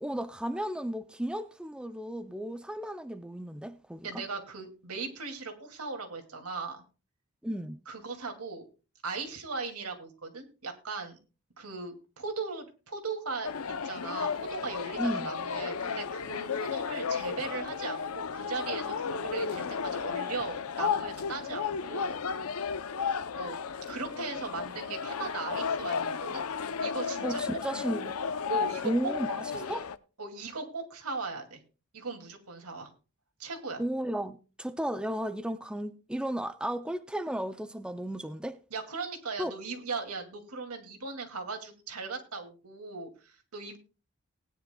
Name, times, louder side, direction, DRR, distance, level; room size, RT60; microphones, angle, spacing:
voice 1, 0.0-4.2 7.4-7.8 15.0-15.3 27.2-28.1 28.8-29.8 33.8-38.6 39.4-39.5, right 1 dB, 5° right, 0.4 m, -34 dB
voice 2, 4.0-6.8 7.9-8.6 9.0-11.2 11.6-13.5 13.8-22.2 23.4-23.6 23.9-26.4 26.8-27.6 28.5-29.1 29.5-29.7 30.2-31.6 31.9-32.9 33.4-33.8 38.7-43.8, right 4 dB, 90° right, 2.4 m, -38 dB
sound 1, 13.4-30.0, left 6 dB, 80° left, 0.6 m, -33 dB
19.0 x 10.0 x 2.2 m
head